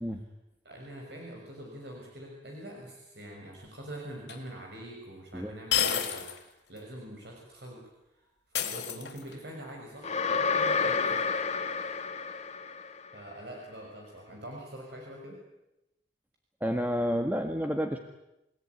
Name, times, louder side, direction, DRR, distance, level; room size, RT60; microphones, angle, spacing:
voice 1, 0.6-7.8 8.1-11.3 13.1-15.4, right 1 dB, 65° right, 0 dB, 6.5 m, -44 dB
sound 1, 4.3-4.4 5.7-6.4 6.8-6.9 8.5-9.4, left 9 dB, 80° left, 3.3 m, -30 dB
sound 2, 10.0-13.1, left 5 dB, 40° left, 2.1 m, -29 dB
voice 2, 16.6-18.0, equal, 10° right, 5 dB, 1.6 m, -30 dB
29.5 x 18.0 x 9.7 m, 0.90 s
head